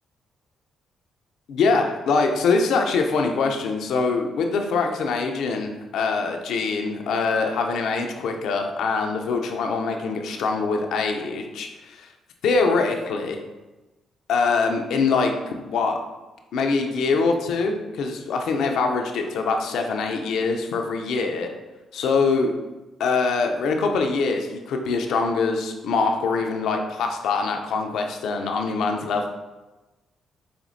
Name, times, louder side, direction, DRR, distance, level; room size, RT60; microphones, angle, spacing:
voice 1, 1.5-12.1 12.4-13.4 14.3-15.3 15.6-16.0 16.5-21.5 21.9-22.5 23.0-29.3, left 4 dB, 75° left, 3 dB, 0.4 m, -23 dB
5.1 x 2.7 x 2.6 m, 1.1 s
supercardioid pair, 55°, 0 cm